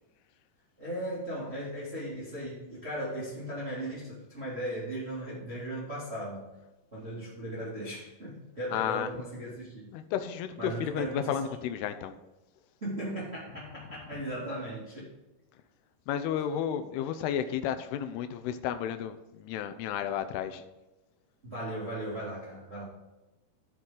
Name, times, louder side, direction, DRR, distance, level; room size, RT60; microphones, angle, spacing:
voice 1, 0.8-6.5 6.9-9.9 10.6-11.5 12.8-15.1 21.4-22.8, right 1 dB, 20° right, -8 dB, 2.1 m, -37 dB
voice 2, 8.7-9.1 9.9-12.1 16.1-20.6, left 9 dB, 90° left, 9 dB, 2.7 m, -32 dB
14.5 x 5.8 x 3.8 m, 1.0 s
omnidirectional pair, 4.5 m